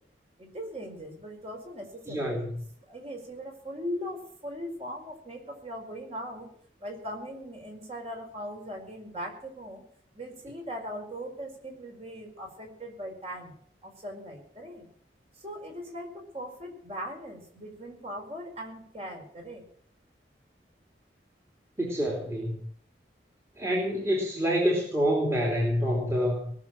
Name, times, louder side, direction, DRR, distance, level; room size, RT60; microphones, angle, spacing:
voice 1, 0.4-2.3 2.8-6.5 6.8-9.8 10.1-14.9 15.3-19.6, equal, 35° right, 2 dB, 4.7 m, -39 dB
voice 2, 2.1-2.6 21.8-22.6 23.6-26.5, equal, 15° right, -3 dB, 3.0 m, -27 dB
19.5 x 6.6 x 8.7 m, 0.62 s
head